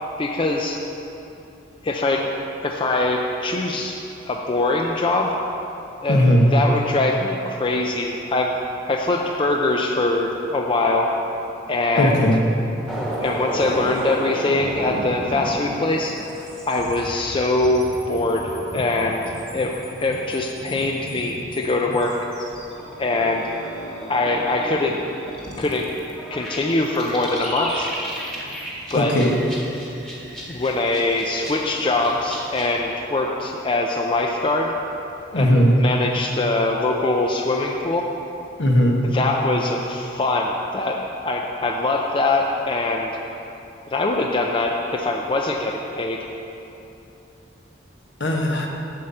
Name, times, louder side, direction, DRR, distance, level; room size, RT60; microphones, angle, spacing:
voice 1, 0.2-0.8 1.8-2.3 2.6-4.0 4.3-5.3 6.0-6.3 6.5-8.6 8.9-11.1 11.7-12.2 13.2-16.1 16.7-18.4 18.7-19.2 19.5-19.7 20.0-22.1 23.0-23.4 24.1-25.0 25.6-25.9 26.3-27.9 28.9-29.1 30.5-34.7 35.3-38.0 39.1-43.1 43.9-46.2, left 2 dB, 25° left, 1 dB, 0.5 m, -22 dB
voice 2, 6.1-6.4 12.0-12.4 28.9-29.3 35.3-35.7 38.6-39.0 48.2-48.7, equal, 70° left, 0 dB, 1.2 m, -17 dB
sound 1, 12.9-32.8, equal, 5° left, 1.3 m, -34 dB
7.6 x 5.7 x 7.7 m, 2.9 s
head